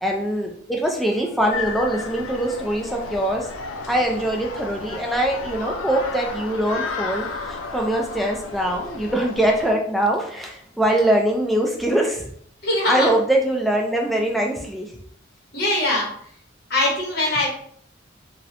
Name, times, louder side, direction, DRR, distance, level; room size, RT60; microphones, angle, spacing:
voice 1, 0.0-3.5 3.9-12.3 12.8-14.9 17.2-17.4, right 1 dB, ahead, 0 dB, 0.3 m, -23 dB
sound 1, 1.5-9.7, left 4 dB, 85° left, 0.3 m, -33 dB
voice 2, 12.6-13.1 15.5-16.1 16.7-17.5, left 1 dB, 55° left, -3 dB, 0.9 m, -21 dB
2.7 x 2.0 x 2.5 m, 0.62 s
head